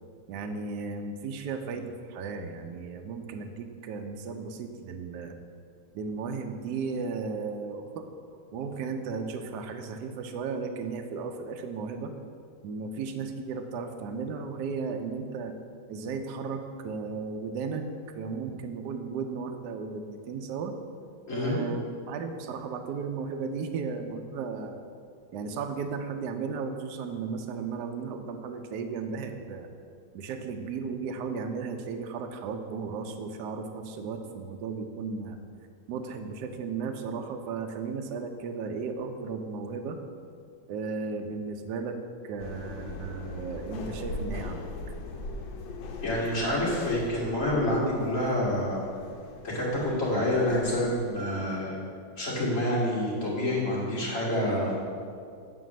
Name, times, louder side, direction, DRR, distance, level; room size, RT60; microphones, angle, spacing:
voice 1, 0.3-5.3 5.9-8.0 8.5-12.1 12.6-15.5 15.9-17.9 18.1-20.7 21.3-24.8 25.3-29.7 30.1-35.4 35.9-40.0 40.7-42.0 42.2-44.7, right 5 dB, 70° right, 5 dB, 1.0 m, -35 dB
sound 1, 42.4-51.1, left 2 dB, 75° left, 1.5 m, -40 dB
voice 2, 46.0-48.9 49.4-51.8 52.2-54.8, left 1 dB, 40° left, -6 dB, 2.4 m, -27 dB
7.9 x 4.9 x 6.2 m, 2.3 s
omnidirectional pair, 2.3 m